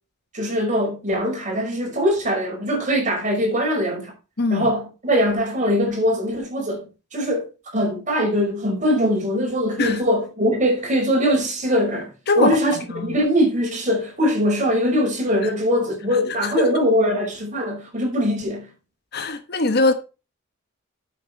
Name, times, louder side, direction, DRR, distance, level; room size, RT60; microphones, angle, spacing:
voice 1, 0.3-4.1 4.5-12.1 12.4-18.7, equal, 35° right, 5.0 m, -22 dB
voice 2, 4.4-4.7 9.8-10.0 12.3-12.6 12.9-13.2 16.4-16.7 19.1-19.9, left 2 dB, 50° left, 1.2 m, -21 dB
9.3 x 7.9 x 4.3 m
head